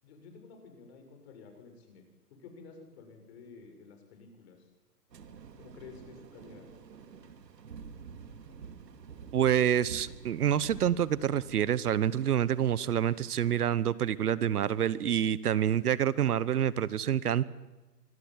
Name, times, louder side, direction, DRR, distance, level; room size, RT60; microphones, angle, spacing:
voice 1, 0.0-4.7 5.6-6.7, left 5 dB, 40° left, 5 dB, 7.5 m, -52 dB
sound 1, 5.1-13.5, right 6 dB, 85° right, 2.9 m, -49 dB
voice 2, 9.3-17.4, right 10 dB, 65° right, 19 dB, 1.3 m, -27 dB
25.5 x 21.0 x 9.7 m, 1.1 s
hypercardioid pair, 150°, 48 cm